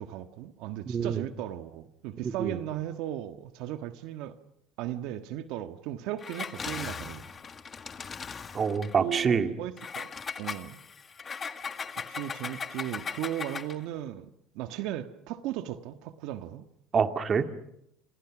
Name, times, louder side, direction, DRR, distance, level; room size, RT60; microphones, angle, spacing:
voice 1, 0.0-4.3 4.8-7.2 9.0-10.1 10.4-10.8 11.9-16.6, right 12 dB, 75° right, 9 dB, 1.5 m, -36 dB
voice 2, 0.9-1.2 2.2-2.6 8.5-9.5 16.9-17.5, right 6 dB, 30° right, 8 dB, 2.2 m, -26 dB
Engine, 6.2-9.0 9.8-13.8, left 6 dB, 30° left, 1.7 m, -38 dB
28.0 x 28.0 x 6.2 m, 0.78 s
cardioid pair, 115°, 0 cm